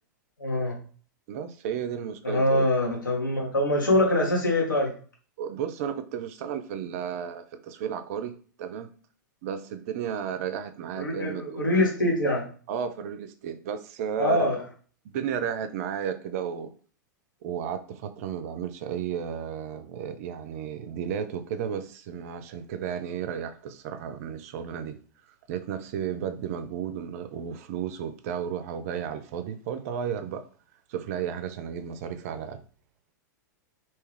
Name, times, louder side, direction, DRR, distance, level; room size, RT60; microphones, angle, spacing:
voice 1, 0.4-0.8 2.2-4.9 10.9-12.4 14.2-14.6, left 1 dB, 85° left, -1 dB, 1.2 m, -24 dB
voice 2, 1.3-2.7 5.4-8.3 8.6-8.9 9.4-11.6 12.7-14.5 15.0-16.7 17.4-25.0 25.5-30.5 30.9-32.6, right 8 dB, 50° right, 10 dB, 0.4 m, -33 dB
2.8 x 2.3 x 3.2 m, 0.42 s
figure-of-eight pair, 95°, 10 cm